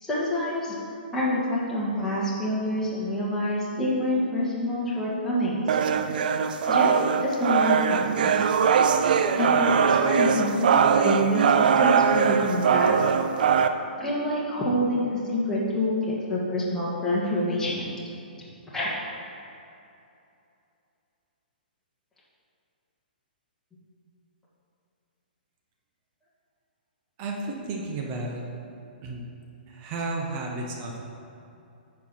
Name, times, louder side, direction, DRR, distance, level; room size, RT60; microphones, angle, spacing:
voice 1, 0.0-0.7 1.1-5.8 6.7-8.0 8.2-8.5 9.3-13.0 14.0-17.9 18.7-18.9, left 1 dB, 5° left, -8 dB, 1.8 m, -27 dB
sound 1, 5.7-13.7, right 6 dB, 65° right, 0.5 m, -21 dB
voice 2, 27.2-28.4 29.0-29.2 29.7-31.0, right 2 dB, 35° right, 0 dB, 1.0 m, -32 dB
11.0 x 4.7 x 4.3 m, 2.7 s
hypercardioid pair, 125°, 5 cm